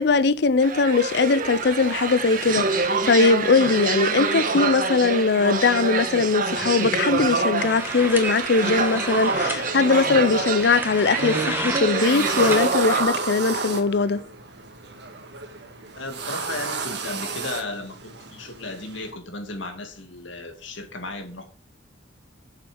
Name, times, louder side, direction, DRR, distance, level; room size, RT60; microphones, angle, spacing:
voice 1, 0.0-14.2, left 4 dB, 60° left, 0.5 m, -20 dB
sound 1, 0.6-13.0, right 4 dB, 45° right, 1.3 m, -26 dB
sound 2, 7.6-12.7, right 2 dB, 10° right, 1.5 m, -32 dB
sound 3, 8.9-19.1, right 4 dB, 60° right, 1.6 m, -33 dB
voice 2, 15.9-21.4, left 2 dB, 85° left, 2.4 m, -35 dB
7.5 x 7.2 x 6.3 m
head